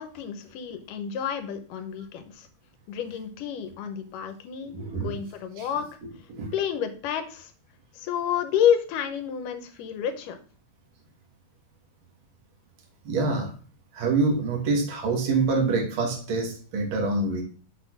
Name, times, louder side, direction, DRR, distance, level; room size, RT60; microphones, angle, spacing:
voice 1, 0.0-2.5 2.9-5.9 6.5-7.5 7.9-10.4, left 9 dB, 85° left, 8 dB, 2.5 m, -29 dB
voice 2, 4.6-5.1 5.6-5.7 6.3-6.5 13.0-13.5 13.9-17.4, right 3 dB, 45° right, 1 dB, 2.1 m, -26 dB
6.6 x 3.7 x 5.9 m, 0.40 s
omnidirectional pair, 3.7 m